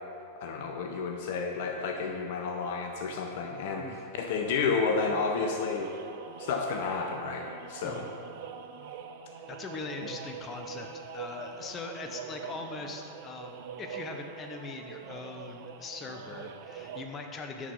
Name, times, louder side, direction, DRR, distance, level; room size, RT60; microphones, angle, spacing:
voice 1, 0.4-5.9 6.4-8.1 10.0-10.1, left 4 dB, 50° left, 3 dB, 0.6 m, -31 dB
sound 1, 5.0-17.0, right 7 dB, 50° right, 0.5 m, -44 dB
voice 2, 9.5-17.7, left 3 dB, 25° left, 4 dB, 0.8 m, -41 dB
9.9 x 4.7 x 5.6 m, 2.5 s
figure-of-eight pair, 90°, 0 cm